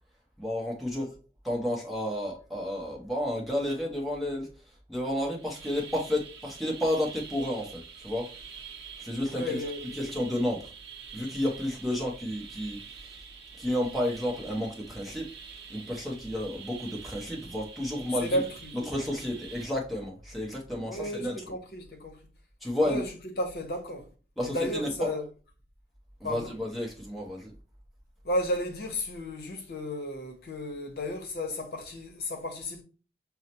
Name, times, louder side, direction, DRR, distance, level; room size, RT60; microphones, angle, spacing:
voice 1, 0.4-1.1 1.4-4.5 4.9-8.3 9.0-9.6 9.9-10.7 11.1-13.2 13.6-15.3 15.7-18.4 18.7-21.4 22.6-23.0 24.4-25.1 26.2-27.5, left 1 dB, ahead, 0.7 m, -31 dB
sound 1, 5.3-19.7, right 6 dB, 85° right, 0.6 m, -46 dB
voice 2, 9.3-10.0 18.2-18.8 20.9-22.2 22.8-23.1 23.4-24.1 24.4-25.2 26.2-26.5 28.2-32.8, left 1 dB, 60° left, 0.8 m, -33 dB
5.5 x 2.0 x 2.8 m
head